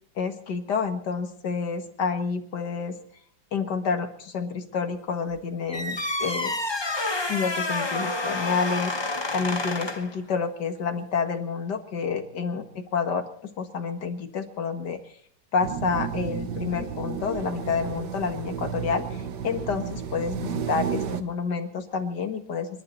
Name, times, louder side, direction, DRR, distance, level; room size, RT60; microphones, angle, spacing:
voice 1, 0.2-3.0 3.5-6.5 7.3-8.9 9.3-15.0 15.5-22.8, left 5 dB, 70° left, 6 dB, 2.3 m, -29 dB
sound 1, 5.7-10.1, left 2 dB, 20° left, 0.9 m, -29 dB
sound 2, 15.6-21.2, right 7 dB, 75° right, 1.7 m, -32 dB
29.5 x 11.0 x 4.1 m, 0.63 s
omnidirectional pair, 1.9 m